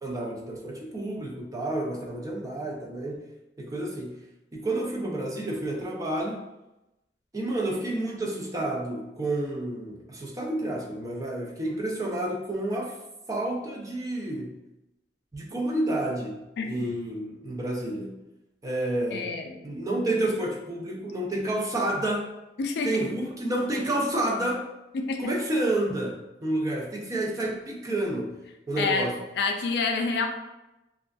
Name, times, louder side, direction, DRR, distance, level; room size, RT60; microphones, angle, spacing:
voice 1, 0.0-3.3 3.6-4.1 4.5-6.4 7.3-13.0 13.3-14.5 15.3-18.2 18.6-19.3 19.6-22.3 22.8-24.6 25.2-28.4 28.7-29.2, right 1 dB, 20° right, -1 dB, 0.3 m, -30 dB
voice 2, 19.1-19.6 22.6-22.9 24.9-25.2 28.8-30.3, left 4 dB, 65° left, 4 dB, 0.3 m, -28 dB
2.3 x 2.2 x 2.5 m, 0.96 s
head